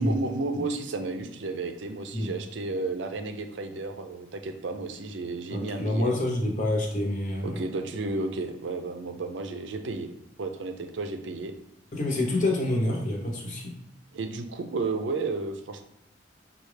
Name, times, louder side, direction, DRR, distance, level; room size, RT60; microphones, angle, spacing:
voice 1, 0.0-6.1 7.4-10.1 10.4-11.5 14.1-15.8, right 3 dB, 80° right, 6 dB, 0.5 m, -32 dB
voice 2, 5.5-7.6 11.9-13.7, left 1 dB, 45° left, -1 dB, 0.9 m, -27 dB
5.6 x 2.4 x 3.2 m, 0.78 s
head